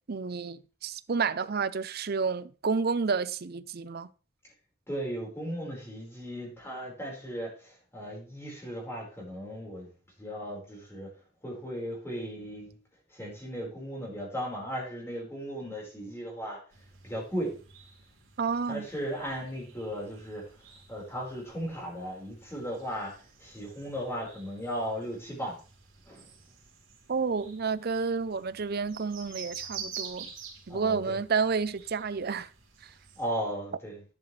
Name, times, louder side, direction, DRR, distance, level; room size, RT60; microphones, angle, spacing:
voice 1, 0.1-4.1 18.4-18.9 27.1-30.3 30.7-32.5, right 5 dB, 50° right, 0.6 m, -30 dB
voice 2, 4.9-9.9 10.2-11.1 11.4-12.7 13.1-16.6 17.0-17.6 18.7-20.5 20.9-25.6 26.1-26.3 30.7-31.2 33.2-34.0, equal, 15° left, 4.7 m, -36 dB
sound 1, 16.7-33.3, right 7 dB, 70° right, 3.5 m, -48 dB
11.0 x 10.5 x 3.3 m
head